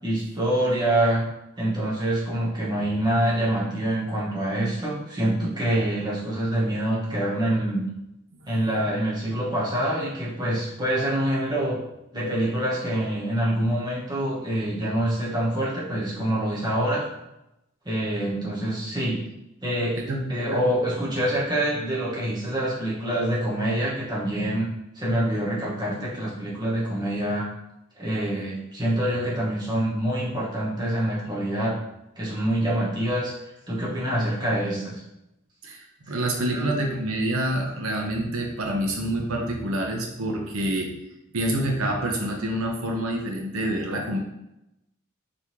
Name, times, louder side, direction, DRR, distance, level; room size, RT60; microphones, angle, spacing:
voice 1, 0.0-1.2 1.6-7.8 8.5-11.8 12.1-17.0 17.8-19.2 19.6-20.0 20.3-24.7 24.9-27.5 28.0-31.8 32.2-33.3 33.7-35.0 36.1-36.2 36.5-36.6, right 1 dB, 20° right, -6 dB, 1.0 m, -26 dB
voice 2, 35.6-40.9 41.3-44.2, right 1 dB, 90° right, 1 dB, 0.7 m, -27 dB
4.2 x 3.5 x 3.0 m, 0.87 s
head